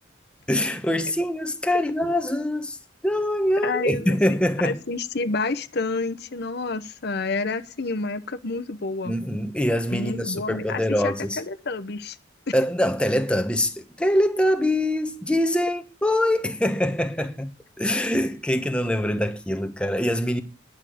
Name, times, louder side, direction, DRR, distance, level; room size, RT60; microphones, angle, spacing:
voice 1, 0.5-2.8 3.0-4.8 9.0-11.4 12.5-17.5 17.8-20.4, left 1 dB, 5° left, 1.1 m, -24 dB
voice 2, 3.6-4.2 4.6-9.1 9.9-12.2, left 3 dB, 55° left, 0.9 m, -29 dB
11.0 x 6.7 x 9.3 m
head